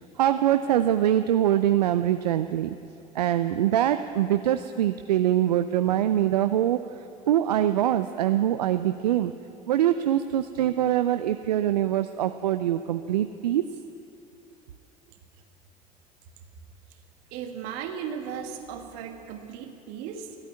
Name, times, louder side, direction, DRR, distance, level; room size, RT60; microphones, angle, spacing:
voice 1, 0.2-2.8 3.1-9.3 9.7-13.6, right 11 dB, 85° right, 10 dB, 0.4 m, -24 dB
voice 2, 17.3-20.4, right 7 dB, 70° right, 6 dB, 1.5 m, -36 dB
14.0 x 9.0 x 9.5 m, 2.6 s
hypercardioid pair, 65°, 20 cm